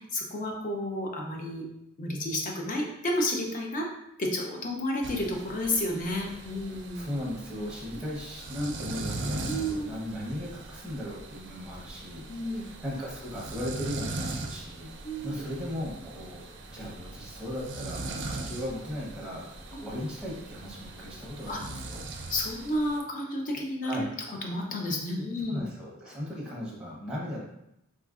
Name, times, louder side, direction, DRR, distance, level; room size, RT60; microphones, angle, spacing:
voice 1, 0.1-1.7 2.0-3.9 4.2-7.1 8.5-8.7 9.4-10.0 12.3-12.7 15.0-15.4 19.7-19.8 21.5-21.6 22.3-24.0 24.4-25.6, left 1 dB, 40° left, 1 dB, 0.5 m, -31 dB
sound 1, 5.0-23.0, right 2 dB, 55° right, 0.4 m, -40 dB
voice 2, 6.9-14.9 15.2-22.0 23.8-24.1 25.5-27.4, left 1 dB, 5° right, -4 dB, 0.7 m, -37 dB
3.9 x 2.5 x 2.4 m, 0.81 s
head